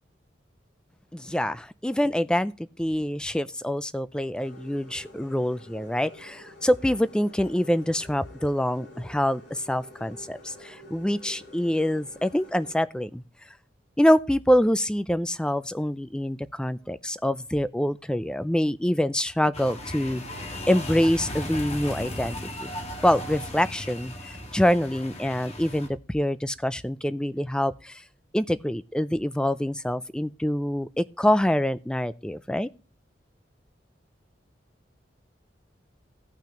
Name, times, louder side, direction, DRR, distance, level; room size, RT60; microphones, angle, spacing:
voice 1, 1.1-13.2 14.0-20.2 20.7-22.7 23.0-24.1 24.5-28.0 28.3-32.7, equal, 5° left, 0.4 m, -25 dB
sound 1, 4.3-12.8, left 1 dB, 70° left, 4.4 m, -48 dB
sound 2, 19.5-25.9, left 1 dB, 35° left, 1.7 m, -36 dB
16.0 x 5.9 x 2.9 m
head